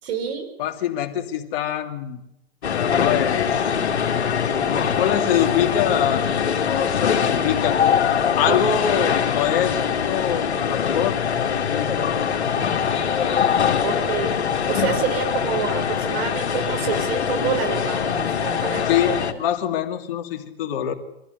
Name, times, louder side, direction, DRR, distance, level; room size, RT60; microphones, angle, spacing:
voice 1, 0.0-0.5 8.4-8.6 13.8-14.4 14.7-19.2, right 6 dB, 65° right, 7 dB, 6.1 m, -27 dB
voice 2, 0.6-2.2 2.7-3.6 4.4-6.3 6.6-7.8 8.4-9.8 10.0-13.4 13.7-14.0 18.9-20.9, left 9 dB, 55° left, 4 dB, 3.0 m, -25 dB
sound 1, 2.6-19.3, left 7 dB, 80° left, 2.9 m, -23 dB
25.0 x 15.0 x 8.1 m, 0.88 s
hypercardioid pair, 115°, 33 cm